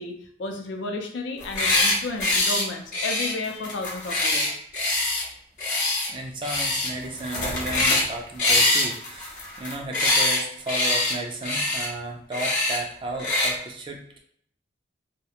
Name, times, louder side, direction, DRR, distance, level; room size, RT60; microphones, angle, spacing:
voice 1, 0.0-4.6, left 2 dB, 85° left, 3 dB, 0.5 m, -32 dB
sound 1, 1.4-2.0 2.2-2.6 2.9-5.2 5.6-6.1 6.4-6.9 7.2-8.1 8.4-10.4 10.7-11.1 11.4-11.9 12.3-12.8 13.2-13.5, left 2 dB, 45° left, 0.8 m, -23 dB
voice 2, 6.1-14.2, right 2 dB, 25° right, 1 dB, 0.3 m, -34 dB
2.4 x 2.1 x 2.8 m, 0.66 s
head